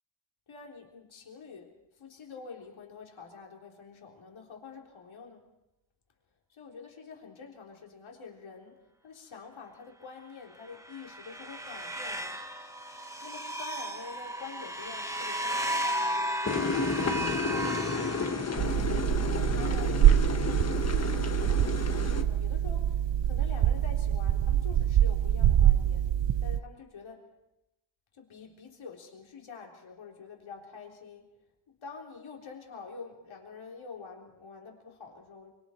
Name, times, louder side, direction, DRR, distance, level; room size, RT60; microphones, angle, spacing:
voice 1, 0.5-1.7 2.0-5.5 6.5-8.8 9.0-12.4 13.2-19.2 19.5-20.1 20.8-26.1 26.4-27.2 28.1-31.3 31.7-35.5, left 5 dB, 85° left, 0 dB, 3.5 m, -47 dB
sound 1, 10.6-18.9, right 1 dB, 5° right, 1.6 m, -35 dB
sound 2, 16.4-22.2, left 4 dB, 35° left, 1.4 m, -31 dB
sound 3, 18.6-26.6, right 11 dB, 70° right, 0.7 m, -25 dB
25.5 x 25.0 x 4.5 m, 0.89 s
wide cardioid pair, 175°, 46 cm